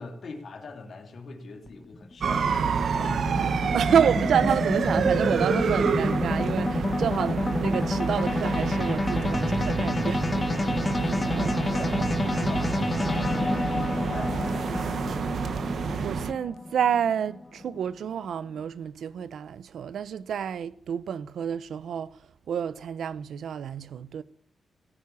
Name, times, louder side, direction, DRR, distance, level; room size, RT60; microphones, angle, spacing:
voice 1, 0.0-3.9 11.2-12.0 12.2-15.1, left 3 dB, 50° left, 2.8 m, -42 dB
sound 1, 1.7-18.1, left 2 dB, 20° left, 1.1 m, -29 dB
sound 2, 2.2-16.3, right 5 dB, 55° right, 1.1 m, -28 dB
voice 2, 3.7-10.3 16.0-22.2 22.5-24.2, right 8 dB, 80° right, 0.7 m, -29 dB
17.0 x 8.9 x 8.4 m
wide cardioid pair, 160°, 0 cm